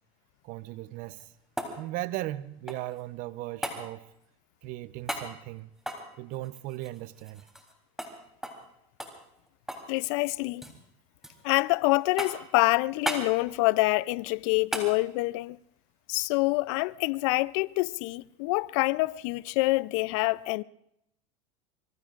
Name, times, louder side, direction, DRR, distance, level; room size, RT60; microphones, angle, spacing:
voice 1, 0.4-1.2 1.8-4.1 4.6-5.7 6.2-7.5, right 16 dB, 55° right, 0.8 m, -37 dB
sound 1, 0.9-3.0 3.6-3.8 5.1-5.3 5.8-7.7 8.0-8.1 8.4-8.7 9.0-9.9 10.2-10.8 11.2-11.7 12.2-12.5 13.0-13.3 14.7-14.9 17.3-17.4, equal, ahead, 3.6 m, -36 dB
voice 2, 9.9-10.7 11.4-15.6 16.1-20.6, left 22 dB, 65° left, 0.5 m, -26 dB
25.0 x 22.5 x 2.5 m
hypercardioid pair, 95°, 17 cm